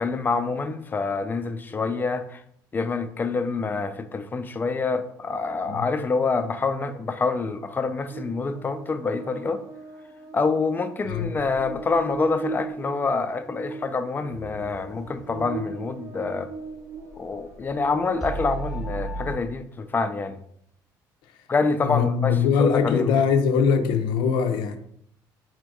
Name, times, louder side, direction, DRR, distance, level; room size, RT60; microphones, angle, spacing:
voice 1, 0.0-2.4 2.7-9.6 10.3-16.5 17.2-20.4 21.5-23.2, left 4 dB, 25° left, 0.4 m, -26 dB
Buzz, 8.1-17.6, right 4 dB, 40° right, 0.5 m, -39 dB
sound 1, 11.1-19.4, right 2 dB, ahead, 0.8 m, -39 dB
voice 2, 21.8-24.8, left 6 dB, 80° left, 0.6 m, -22 dB
4.3 x 2.5 x 4.7 m
cardioid pair, 95°, 8 cm